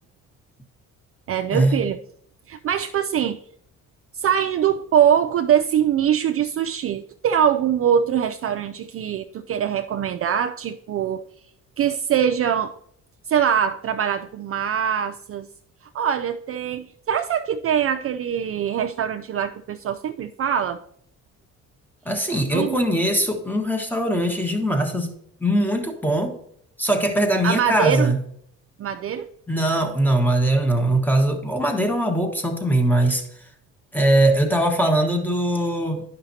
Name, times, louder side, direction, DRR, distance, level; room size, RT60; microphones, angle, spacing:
voice 1, 1.3-2.0 2.5-3.4 4.1-11.2 11.8-12.7 13.3-15.5 15.9-20.8 22.5-22.8 27.4-28.1 28.8-29.3, right 9 dB, 45° right, 8 dB, 0.4 m, -23 dB
voice 2, 22.0-25.1 25.4-26.4 26.8-28.2 29.5-33.2 33.9-36.0, right 1 dB, 5° left, 3 dB, 1.3 m, -21 dB
10.0 x 5.7 x 2.7 m, 0.69 s
cardioid pair, 85°, 33 cm